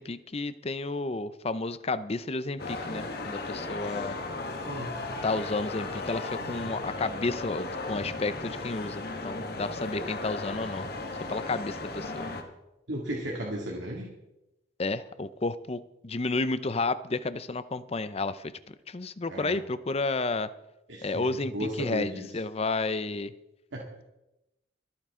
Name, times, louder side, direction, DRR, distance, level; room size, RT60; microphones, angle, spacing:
voice 1, 0.0-4.2 5.2-10.9 11.3-12.3 14.8-18.5 18.9-20.5 21.0-23.3, left 3 dB, 35° left, 14 dB, 0.6 m, -31 dB
sound 1, 2.6-12.4, left 2 dB, 55° left, 1.5 m, -36 dB
voice 2, 12.9-14.1 19.3-19.6 20.9-22.3 23.7-23.9, equal, 80° right, -2 dB, 2.2 m, -35 dB
25.0 x 9.2 x 3.7 m, 0.95 s
head